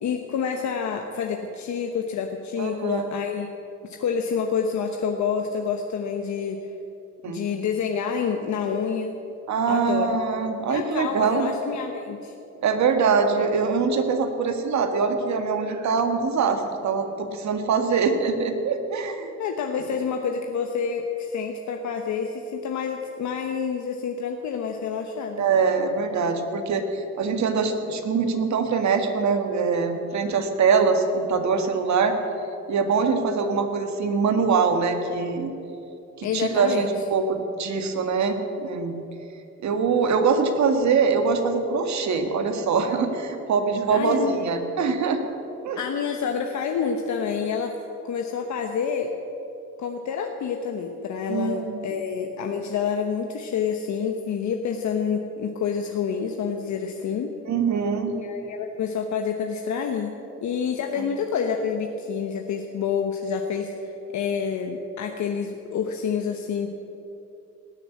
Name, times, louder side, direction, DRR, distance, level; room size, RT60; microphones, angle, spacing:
voice 1, 0.0-3.5 3.8-6.7 7.3-9.2 9.7-10.2 10.7-12.3 19.4-25.4 36.2-36.9 43.9-44.5 45.8-47.7 48.0-49.1 49.8-57.3 58.1-60.1 60.4-66.7, left 6 dB, 70° left, 4 dB, 1.1 m, -28 dB
voice 2, 2.6-3.1 7.2-7.4 9.5-11.5 12.6-19.3 25.4-32.2 32.7-35.5 36.2-38.9 39.6-45.2 45.6-45.8 51.3-52.1 57.5-58.2 61.0-61.1, right 5 dB, 65° right, 6 dB, 1.7 m, -23 dB
19.0 x 6.8 x 8.6 m, 2.9 s
cardioid pair, 90°, 30 cm